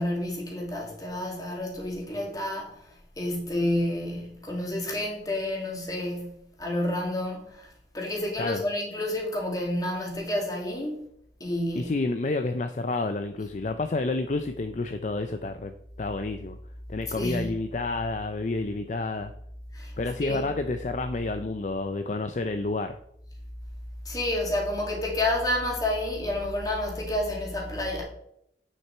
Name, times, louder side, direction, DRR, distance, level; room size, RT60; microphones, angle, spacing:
voice 1, 0.0-2.9 3.2-11.0 11.4-11.9 17.2-17.6 19.7-19.9 20.2-20.5 24.1-28.0, left 1 dB, 20° left, 2.1 m, -30 dB
voice 2, 11.8-15.7 16.0-16.6 16.9-19.3 20.0-23.0, left 3 dB, 40° left, 0.4 m, -29 dB
8.9 x 6.6 x 4.4 m
head